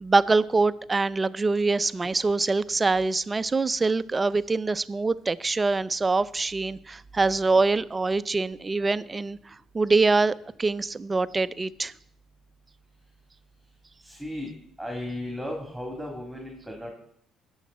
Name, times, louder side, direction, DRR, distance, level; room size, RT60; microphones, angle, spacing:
voice 1, 0.0-11.9, right 3 dB, 25° right, 0.5 m, -24 dB
voice 2, 14.0-14.5 14.8-16.9, left 1 dB, ahead, 3.2 m, -35 dB
20.0 x 7.2 x 4.3 m
supercardioid pair, 75°, 0 cm